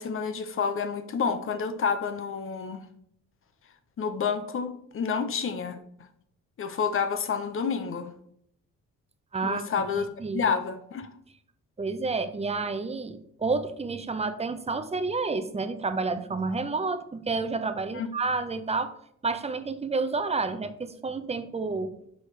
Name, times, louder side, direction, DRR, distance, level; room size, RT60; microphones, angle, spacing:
voice 1, 0.0-2.8 4.0-5.8 6.6-8.1 9.4-10.1 10.3-11.1 17.9-18.1, left 6 dB, 45° left, 10 dB, 0.7 m, -29 dB
voice 2, 9.3-9.6 10.0-10.4 11.8-18.9 19.2-21.9, right 3 dB, 20° right, 10 dB, 0.6 m, -30 dB
6.3 x 4.8 x 3.2 m, 0.71 s
cardioid pair, 90°, 30 cm